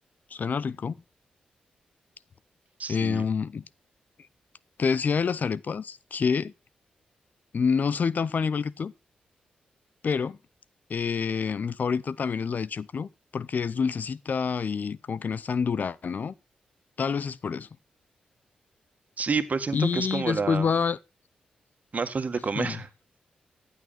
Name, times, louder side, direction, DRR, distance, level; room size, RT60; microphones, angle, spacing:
voice 1, 0.3-0.9 2.9-3.6 4.8-6.5 7.5-8.9 10.0-10.4 10.9-16.3 17.0-17.7 19.7-21.0 22.6-22.8, left 6 dB, 55° left, 0.6 m, -27 dB
voice 2, 2.8-3.2 19.2-20.7 21.9-22.9, right 4 dB, 50° right, 1.8 m, -29 dB
15.0 x 8.5 x 4.3 m
supercardioid pair, 40°, 3 cm